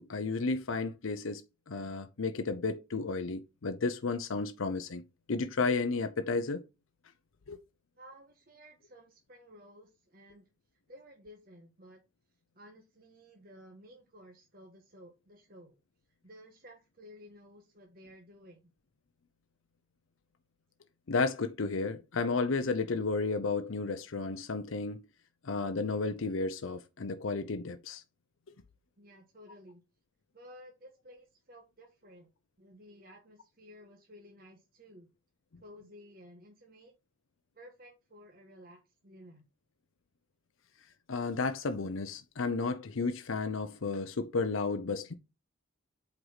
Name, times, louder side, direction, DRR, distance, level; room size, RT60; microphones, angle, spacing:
voice 1, 0.0-1.4 1.7-5.0 5.3-6.6 7.5-7.6 21.1-25.0 25.4-28.0 41.1-45.1, left 4 dB, 90° left, 0.7 m, -32 dB
voice 2, 8.0-10.4 10.9-12.0 12.5-15.8 16.2-18.7 29.0-29.8 30.3-32.3 32.6-35.1 35.6-36.9 37.5-39.5, equal, 45° right, 1.5 m, -54 dB
7.9 x 4.7 x 4.0 m
head